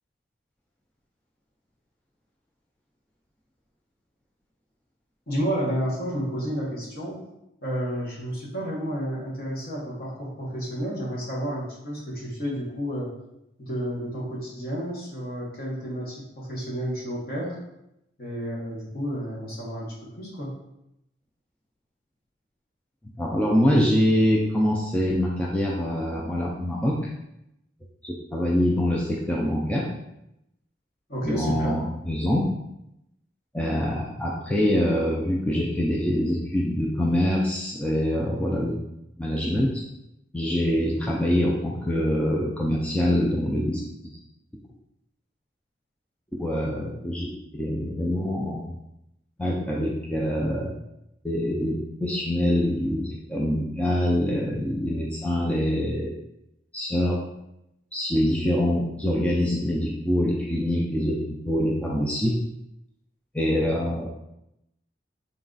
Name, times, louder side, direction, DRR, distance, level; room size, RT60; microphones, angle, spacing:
voice 1, 5.3-7.2 7.6-13.1 13.6-17.6 18.2-20.6 31.1-31.7, equal, 50° left, -4 dB, 1.2 m, -31 dB
voice 2, 23.2-27.1 28.0-29.9 31.2-32.5 33.5-38.8 39.2-39.7 40.3-43.8 46.4-48.8 49.4-50.7 51.2-56.1 56.7-57.2 57.9-62.4 63.3-64.1, left 1 dB, 5° left, -4 dB, 0.3 m, -24 dB
3.9 x 2.3 x 3.8 m, 0.84 s
head